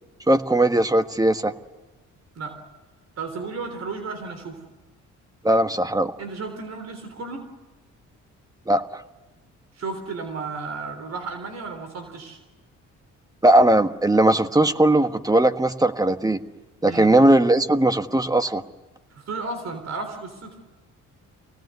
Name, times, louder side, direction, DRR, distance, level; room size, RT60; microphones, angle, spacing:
voice 1, 0.3-1.5 5.4-6.1 8.7-9.0 13.4-16.4 16.8-18.6, right 1 dB, 10° right, 9 dB, 1.3 m, -19 dB
voice 2, 3.2-4.6 6.2-7.4 9.7-12.4 16.9-17.1 19.1-20.6, right 4 dB, 60° right, 7 dB, 3.7 m, -33 dB
25.5 x 18.5 x 9.6 m, 1.2 s
cardioid pair, 90°, 30 cm